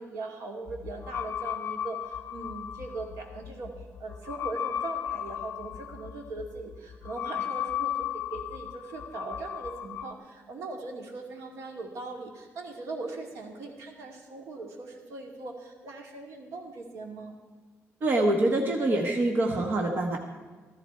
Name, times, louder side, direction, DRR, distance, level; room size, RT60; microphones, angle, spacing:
voice 1, 0.0-3.7 4.0-17.4, right 3 dB, 80° right, 2 dB, 2.4 m, -40 dB
sound 1, 0.7-10.1, left 10 dB, 60° left, 0.7 m, -35 dB
voice 2, 18.0-20.2, right 1 dB, 40° right, 2 dB, 1.3 m, -25 dB
14.5 x 14.5 x 4.4 m, 1.4 s
cardioid pair, 175°, 5 cm